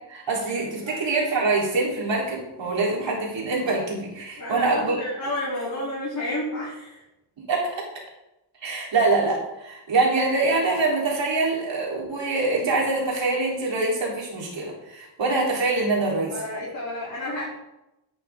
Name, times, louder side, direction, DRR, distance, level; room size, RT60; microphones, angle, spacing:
voice 1, 0.1-5.0 7.5-7.8 8.6-16.3, right 3 dB, 70° right, -3 dB, 4.1 m, -24 dB
voice 2, 0.8-1.1 4.4-7.0 16.3-17.5, left 1 dB, 40° left, -8 dB, 3.9 m, -31 dB
11.0 x 8.8 x 3.9 m, 0.91 s
cardioid pair, 80°, 46 cm